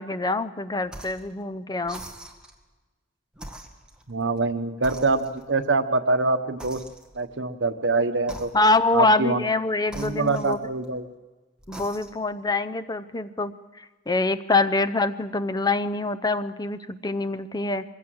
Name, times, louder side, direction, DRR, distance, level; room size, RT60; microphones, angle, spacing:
voice 1, 0.0-2.0 8.5-10.6 11.7-13.5 13.8-17.8, left 3 dB, 20° left, 11 dB, 0.6 m, -25 dB
sound 1, 0.9-1.3 1.8-2.6 3.3-4.5 4.8-5.6 6.6-7.3 8.2-8.9 9.9-11.0 11.6-12.3, right 1 dB, 5° right, 1.7 m, -43 dB
voice 2, 4.1-6.8 7.1-8.5 8.9-9.4 9.9-11.1, right 3 dB, 75° right, 8 dB, 1.2 m, -24 dB
22.5 x 16.5 x 7.9 m, 1.3 s
head